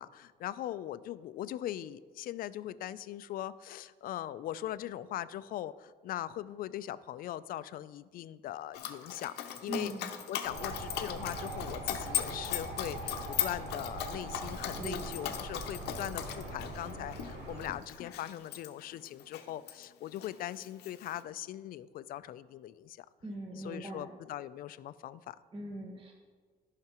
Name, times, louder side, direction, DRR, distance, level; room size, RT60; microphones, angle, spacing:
voice 1, 0.0-9.9 10.3-23.1 23.6-25.4, left 12 dB, 60° left, 16 dB, 0.4 m, -40 dB
Dog, 8.7-19.8 20.2-21.2, left 11 dB, 80° left, 0.7 m, -39 dB
voice 2, 9.7-10.1 14.8-15.3 23.2-24.1 25.5-26.1, right 2 dB, 30° right, 0 dB, 1.2 m, -41 dB
sound 1, 10.4-17.7, right 1 dB, 75° right, 2.5 m, -42 dB
14.0 x 5.7 x 3.0 m, 1.5 s
cardioid pair, 110°, 17 cm